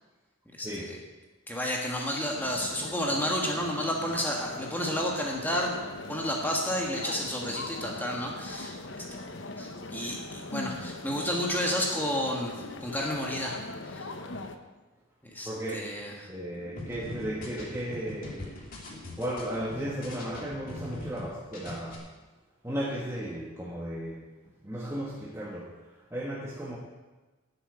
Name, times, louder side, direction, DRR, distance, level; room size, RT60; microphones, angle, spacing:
voice 1, 0.6-1.0 1.5-5.8 6.1-9.0 9.6-12.5 12.8-13.6 13.9-14.1 15.3-16.3 16.6-17.5, equal, 10° left, -1 dB, 1.5 m, -31 dB
sound 1, 2.4-14.6, left 2 dB, 60° left, 1.0 m, -41 dB
voice 2, 15.4-15.9 16.3-18.5 19.2-22.0 22.6-24.2 24.6-25.7 26.1-26.8, right 1 dB, 15° right, -5 dB, 1.5 m, -35 dB
sound 2, 16.8-21.2 21.5-21.9, left 1 dB, 45° left, 2.9 m, -41 dB
12.0 x 7.9 x 8.7 m, 1.2 s
head